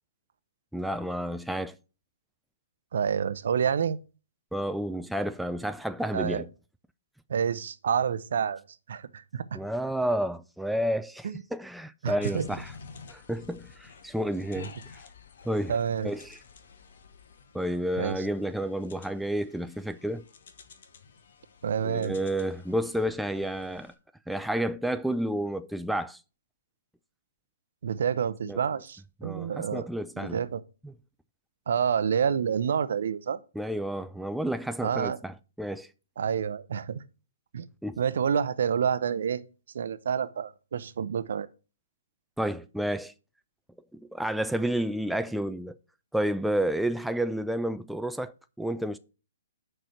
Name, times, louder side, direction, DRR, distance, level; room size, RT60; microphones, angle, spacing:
voice 1, 0.7-1.8 4.5-6.5 9.5-12.7 13.1-15.0 15.4-15.8 16.0-16.4 17.5-20.2 21.8-23.9 24.3-26.2 28.4-28.6 29.2-30.4 30.8-30.9 33.6-35.9 37.8-38.0 42.4-43.1 43.9-45.8 46.1-49.0, right 1 dB, ahead, 0.3 m, -30 dB
voice 2, 2.9-4.0 6.1-6.4 7.3-8.6 8.9-9.4 11.2-11.4 12.0-12.4 14.6-14.7 15.7-16.1 18.0-18.3 21.6-22.2 27.8-29.9 30.2-30.6 31.7-33.4 34.8-35.2 36.2-37.0 37.5-37.7 38.0-39.4 39.7-41.5, right 7 dB, 65° right, 0.6 m, -28 dB
sound 1, 12.2-23.9, left 5 dB, 65° left, 1.3 m, -51 dB
6.4 x 4.4 x 6.5 m
hypercardioid pair, 135°, 0 cm